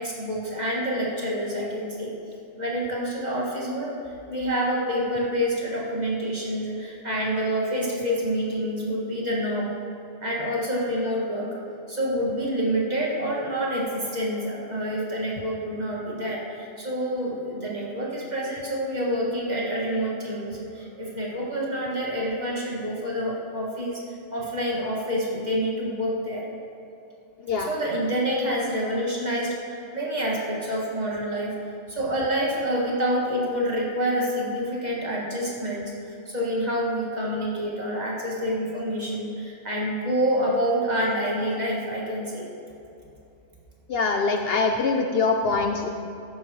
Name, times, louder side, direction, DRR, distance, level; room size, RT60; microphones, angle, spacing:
voice 1, 0.0-2.1 2.6-3.9 4.3-9.7 10.2-11.5 11.9-24.0 24.3-26.4 27.6-31.5 31.9-42.5, equal, 35° right, -4 dB, 2.0 m, -27 dB
voice 2, 43.9-45.9, left 4 dB, 60° left, 3 dB, 0.8 m, -23 dB
12.5 x 10.5 x 3.1 m, 2.8 s
omnidirectional pair, 1.3 m